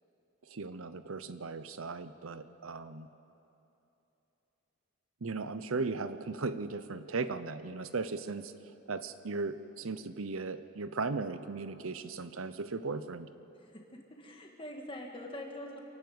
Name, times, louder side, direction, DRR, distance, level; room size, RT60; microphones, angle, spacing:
voice 1, 0.5-3.1 5.2-8.5 8.9-13.3, right 4 dB, 75° right, 12 dB, 0.8 m, -37 dB
voice 2, 13.6-15.8, left 1 dB, 25° left, 1 dB, 2.0 m, -44 dB
27.5 x 11.5 x 8.1 m, 2.9 s
head